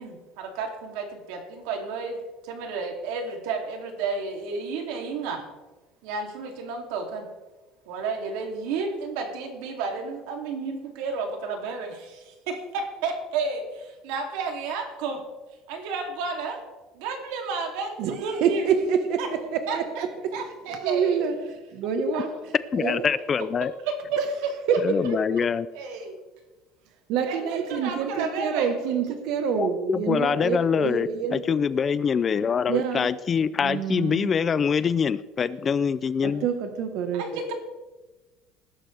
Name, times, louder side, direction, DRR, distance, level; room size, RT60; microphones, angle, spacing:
voice 1, 0.0-2.2 2.4-5.4 6.0-7.3 7.9-15.2 15.7-16.6 16.9-18.6 19.2-19.3 19.7-19.8 20.3-21.2 22.1-22.2 23.9-24.2 25.7-26.2 27.3-28.8 37.1-37.5, right 4 dB, 85° right, 3 dB, 2.9 m, -31 dB
voice 2, 18.0-20.3 20.7-22.3 22.7-23.1 24.2-24.3 24.7-25.4 27.1-31.6 32.7-33.1 33.6-34.3 36.2-37.5, right 7 dB, 55° right, 7 dB, 1.3 m, -27 dB
voice 3, 22.7-23.7 24.8-25.7 29.6-36.4, left 6 dB, 20° left, 16 dB, 0.3 m, -24 dB
19.5 x 11.5 x 3.4 m, 1.2 s
cardioid pair, 180°, 0 cm